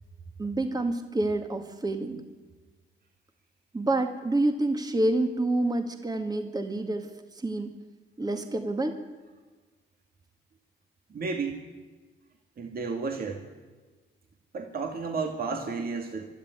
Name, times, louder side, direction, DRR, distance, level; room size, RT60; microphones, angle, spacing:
voice 1, 0.4-2.2 3.7-7.1 7.4-7.7 8.2-8.9, right 2 dB, 20° right, 6 dB, 2.0 m, -28 dB
voice 2, 11.1-11.6 12.6-13.5 14.5-16.3, right 4 dB, 50° right, 3 dB, 2.3 m, -32 dB
24.0 x 13.0 x 9.6 m, 1.3 s
cardioid pair, 90°, 20 cm